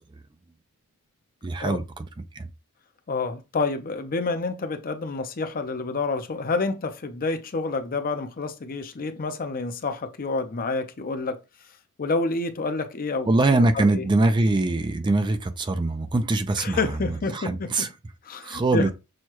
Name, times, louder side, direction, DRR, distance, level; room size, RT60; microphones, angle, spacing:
voice 1, 1.4-2.5 13.3-17.9 18.4-18.9, right 2 dB, 20° right, 0.4 m, -23 dB
voice 2, 3.1-11.4 12.0-13.3 13.7-14.1 16.6-17.9 18.2-18.9, left 3 dB, 40° left, 0.6 m, -28 dB
6.3 x 2.2 x 2.9 m
head